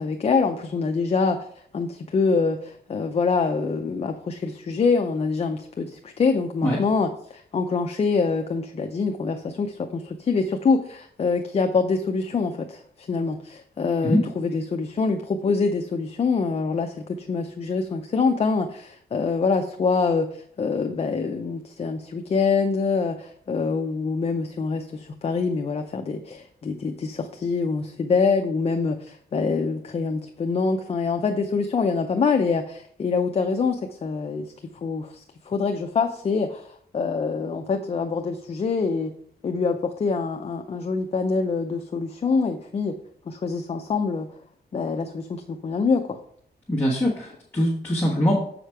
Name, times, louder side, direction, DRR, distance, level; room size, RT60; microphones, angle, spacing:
voice 1, 0.0-1.4 1.7-34.5 34.8-39.1 39.4-43.0 43.3-44.3 44.7-46.2, left 4 dB, 35° left, 5 dB, 0.5 m, -25 dB
voice 2, 46.7-48.4, equal, 10° left, -6 dB, 1.3 m, -22 dB
7.4 x 5.0 x 4.5 m, 0.64 s
wide cardioid pair, 165°, 18 cm